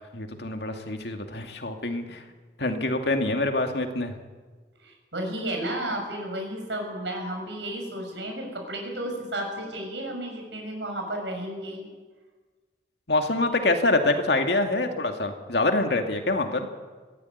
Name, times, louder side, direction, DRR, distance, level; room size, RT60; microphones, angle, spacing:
voice 1, 0.1-2.2 2.6-4.1 13.1-16.7, left 2 dB, 65° left, 5 dB, 2.3 m, -25 dB
voice 2, 4.8-11.9, right 1 dB, 85° right, 2 dB, 7.0 m, -33 dB
22.0 x 15.5 x 9.4 m, 1.4 s
head